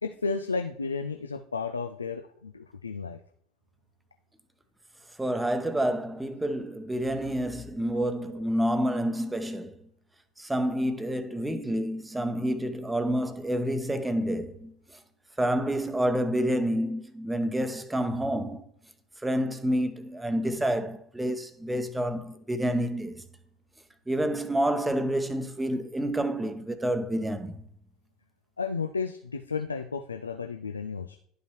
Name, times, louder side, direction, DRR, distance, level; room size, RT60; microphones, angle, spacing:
voice 1, 0.0-3.2 28.6-31.2, left 4 dB, 85° left, 0.4 m, -33 dB
voice 2, 5.2-9.7 10.4-14.7 15.4-18.6 19.2-23.1 24.1-27.6, right 1 dB, 10° right, 0.8 m, -28 dB
11.5 x 5.4 x 3.0 m
figure-of-eight pair, 70°, 0 cm